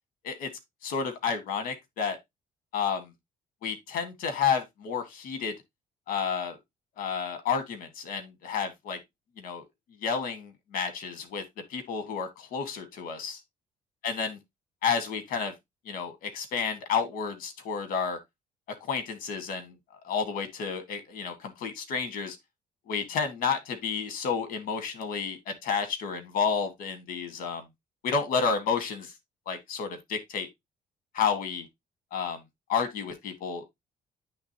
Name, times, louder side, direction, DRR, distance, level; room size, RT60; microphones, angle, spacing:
voice 1, 0.8-2.2 2.7-3.1 3.6-5.5 6.1-6.6 7.0-9.0 9.4-9.6 10.0-11.4 11.7-13.4 14.0-14.4 14.8-15.5 15.8-18.2 18.9-19.7 20.0-22.4 22.9-27.6 28.0-29.1 29.5-30.5 31.1-31.7 32.1-32.4 32.7-33.7, left 6 dB, 80° left, 1.7 m, -30 dB
10.5 x 3.5 x 2.9 m
cardioid pair, 115°, 14 cm